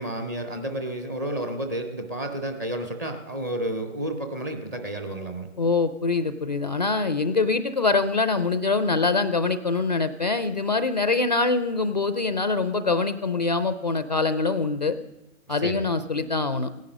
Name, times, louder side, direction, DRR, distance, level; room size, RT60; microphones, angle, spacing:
voice 1, 0.0-5.5 15.5-16.0, right 1 dB, 15° right, 6 dB, 0.5 m, -31 dB
voice 2, 5.6-15.0 15.5-16.7, left 3 dB, 35° left, 12 dB, 0.4 m, -24 dB
17.0 x 10.5 x 6.5 m, 1.0 s
figure-of-eight pair, 140°, 41 cm